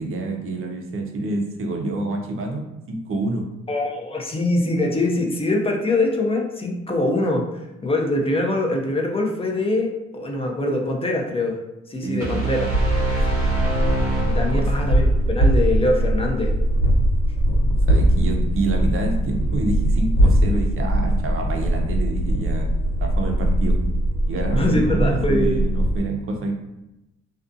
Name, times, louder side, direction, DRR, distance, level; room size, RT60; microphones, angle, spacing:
voice 1, 0.0-3.5 12.0-12.2 14.5-14.7 17.9-23.8 24.3-26.5, right 2 dB, 45° right, 2 dB, 0.5 m, -27 dB
voice 2, 3.7-11.6 11.9-12.7 14.3-16.5 24.6-25.5, left 2 dB, 20° left, 1 dB, 0.4 m, -23 dB
sound 1, 12.2-15.1, right 3 dB, 10° right, 0.9 m, -26 dB
sound 2, 12.7-26.0, right 1 dB, 80° left, 1.1 m, -21 dB
2.4 x 2.3 x 2.5 m, 0.94 s
cardioid pair, 90°, 30 cm